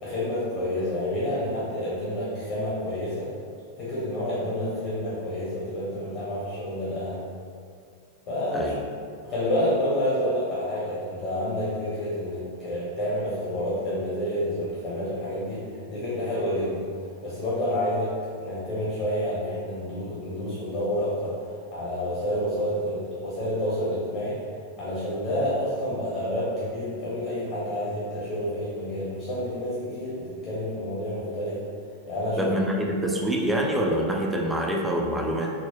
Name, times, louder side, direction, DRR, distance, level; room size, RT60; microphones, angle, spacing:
voice 1, 0.0-3.3 3.8-7.3 8.3-8.8 9.2-24.4 24.8-31.6 32.1-32.5, equal, 40° left, -8 dB, 0.8 m, -29 dB
voice 2, 32.4-35.5, right 1 dB, 5° right, -1 dB, 0.4 m, -25 dB
3.9 x 2.0 x 2.9 m, 2.3 s
figure-of-eight pair, 90°, 0 cm